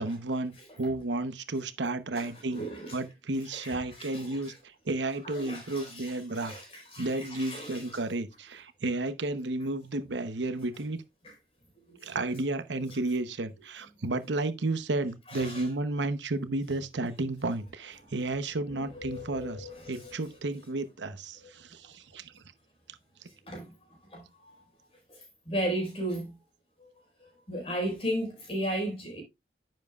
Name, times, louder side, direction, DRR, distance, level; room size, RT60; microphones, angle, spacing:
voice 1, 0.0-2.6 2.9-6.5 7.0-11.0 12.0-22.4, right 2 dB, 85° right, 0.9 m, -32 dB
voice 2, 2.5-3.0 3.4-4.5 5.2-7.9 11.9-12.0 15.3-15.6 18.9-20.1 23.5-24.6 25.1-26.3 27.5-29.2, equal, 30° left, 4.9 m, -36 dB
10.5 x 7.5 x 2.4 m
head